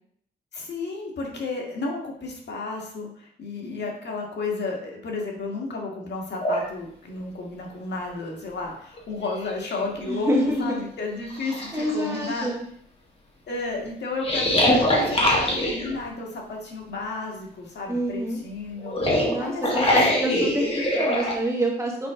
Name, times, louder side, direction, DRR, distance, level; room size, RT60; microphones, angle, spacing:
voice 1, 0.5-10.3 10.6-12.5 13.5-20.0, left 3 dB, 75° left, -1 dB, 1.8 m, -32 dB
sound 1, 6.4-6.7 8.4-8.5 9.0-10.0 10.6-10.7 11.3-12.5 14.2-16.0 18.8-21.4, left 1 dB, 30° left, 1.7 m, -23 dB
voice 2, 10.1-10.8 11.7-12.7 17.9-18.4 19.3-22.1, equal, 15° right, -1 dB, 1.6 m, -27 dB
6.0 x 5.6 x 3.7 m, 0.65 s
wide cardioid pair, 125°, 18 cm